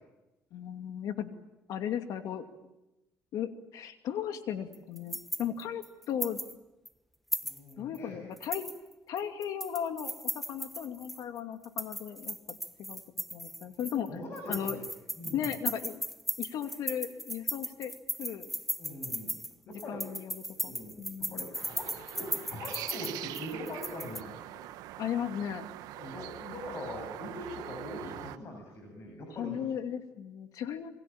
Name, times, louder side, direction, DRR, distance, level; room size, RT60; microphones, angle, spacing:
voice 1, 0.5-1.3 1.7-2.5 3.3-6.4 7.8-8.7 9.1-13.0 13.3-14.1 14.5-14.8 15.3-16.0 16.4-17.9 18.2-18.5 19.9-21.5 25.0-25.6 29.4-30.9, left 9 dB, 70° left, 7 dB, 2.6 m, -36 dB
sound 1, 4.7-6.5 6.8-6.9 7.3-8.0 8.4-11.2 11.6-14.1 14.4-24.2, equal, ahead, 1.3 m, -37 dB
voice 2, 7.4-8.2 13.6-13.7 14.1-14.8 15.1-15.6 18.7-19.4 19.7-20.0 20.5-21.0 21.3-24.6 25.9-29.6, left 1 dB, 40° left, 2 dB, 7.8 m, -42 dB
sound 2, 21.5-28.4, right 15 dB, 90° right, 1.1 m, -43 dB
27.5 x 23.0 x 8.8 m, 0.97 s
cardioid pair, 125°, 6 cm